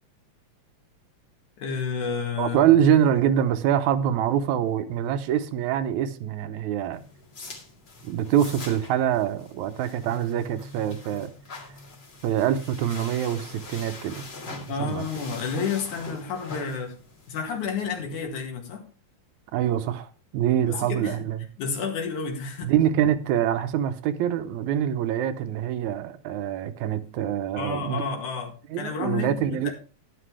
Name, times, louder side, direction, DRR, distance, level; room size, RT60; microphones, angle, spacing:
voice 1, 1.6-2.6 14.7-17.0 17.3-18.9 20.7-21.2 21.6-22.7 27.6-29.7, left 5 dB, 80° left, 3.4 m, -30 dB
voice 2, 2.4-7.0 8.0-11.3 12.2-14.3 14.8-15.0 19.5-20.1 20.3-21.4 22.6-28.0 28.7-29.7, right 10 dB, 80° right, 2.2 m, -24 dB
sound 1, 6.9-18.3, left 3 dB, 40° left, 2.6 m, -43 dB
11.5 x 10.5 x 3.3 m
omnidirectional pair, 3.4 m